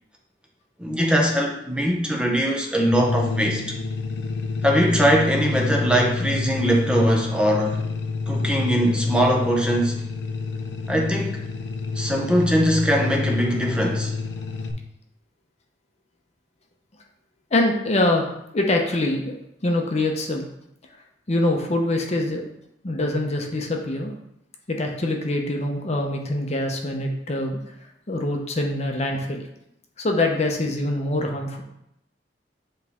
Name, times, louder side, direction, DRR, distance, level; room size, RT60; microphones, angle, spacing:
voice 1, 0.8-3.6 4.6-7.8 8.3-9.9 10.9-11.4 12.0-14.1, equal, 5° right, -1 dB, 0.7 m, -21 dB
sound 1, 2.9-14.7, left 3 dB, 75° left, 0.5 m, -27 dB
voice 2, 17.5-18.2 18.5-19.3 19.6-20.5 21.3-22.4 22.8-24.1 24.7-27.6 28.1-29.4 30.0-31.6, left 1 dB, 40° left, 2 dB, 0.7 m, -24 dB
8.2 x 3.2 x 3.5 m, 0.80 s
head